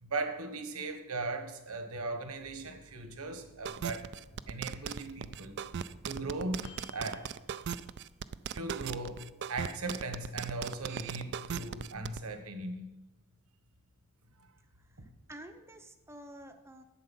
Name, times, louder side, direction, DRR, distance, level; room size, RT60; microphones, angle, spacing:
voice 1, 0.0-4.1 4.5-5.6 6.0-7.3 8.6-12.8, right 3 dB, 80° right, 7 dB, 1.4 m, -38 dB
Microwave oven, 2.4-8.5 8.9-9.0 9.2-9.9, left 1 dB, 55° left, 2.6 m, -57 dB
sound 1, 3.7-12.2, right 7 dB, 50° right, 0.4 m, -38 dB
voice 2, 14.8-16.8, right 1 dB, 10° right, 7 dB, 0.7 m, -50 dB
11.5 x 7.9 x 5.5 m, 0.98 s
head